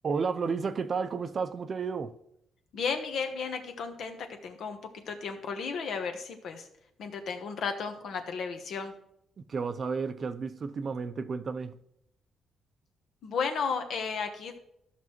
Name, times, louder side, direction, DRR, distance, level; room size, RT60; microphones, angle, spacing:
voice 1, 0.0-2.1 9.4-11.8, right 5 dB, 40° right, 0.5 m, -32 dB
voice 2, 2.7-6.7 7.0-8.9 13.2-14.6, left 5 dB, 70° left, 1.1 m, -34 dB
13.5 x 6.0 x 3.1 m
cardioid pair, 125°, 0 cm